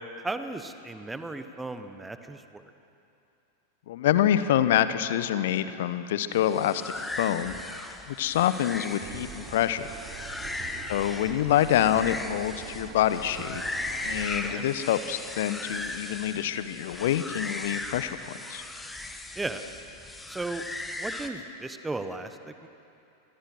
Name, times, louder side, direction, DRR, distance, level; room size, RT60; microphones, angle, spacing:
voice 1, 0.2-2.6 10.4-10.8 14.4-14.6 19.3-19.6 20.3-20.6 21.0-22.7, right 2 dB, 10° right, 9 dB, 1.4 m, -36 dB
voice 2, 3.9-7.5 8.1-9.9 10.3-10.4 10.9-13.6 14.0-18.6, left 11 dB, 55° left, 13 dB, 1.1 m, -26 dB
sound 1, 6.3-21.3, left 2 dB, 10° left, 1.8 m, -38 dB
sound 2, 9.0-14.3, right 10 dB, 40° right, 1.4 m, -44 dB
29.5 x 25.5 x 6.3 m, 2.7 s
figure-of-eight pair, 90°, 0 cm